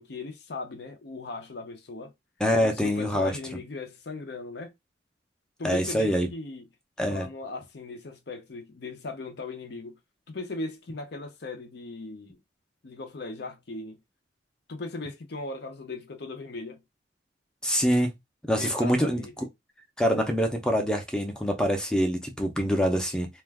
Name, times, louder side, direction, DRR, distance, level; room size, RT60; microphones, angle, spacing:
voice 1, 0.0-2.1 2.5-4.7 5.6-6.7 7.1-10.0 10.3-12.4 12.8-14.0 14.7-16.8 18.6-19.3, left 3 dB, 55° left, 0.6 m, -38 dB
voice 2, 2.4-3.3 5.6-6.3 7.0-7.3 17.6-18.1 18.4-19.4 20.0-23.3, equal, 5° left, 0.6 m, -25 dB
2.5 x 2.2 x 3.3 m
head